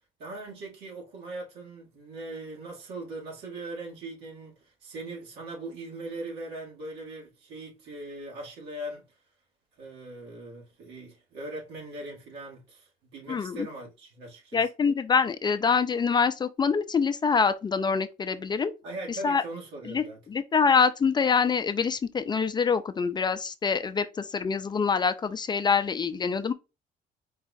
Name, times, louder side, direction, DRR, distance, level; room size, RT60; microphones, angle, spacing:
voice 1, 0.2-9.1 9.8-14.6 18.8-20.2, right 2 dB, 85° right, 2.0 m, -40 dB
voice 2, 13.3-13.7 14.5-18.7 19.1-19.4 19.8-26.5, left 5 dB, 25° left, 0.4 m, -25 dB
4.7 x 2.4 x 4.0 m
cardioid pair, 110°, 17 cm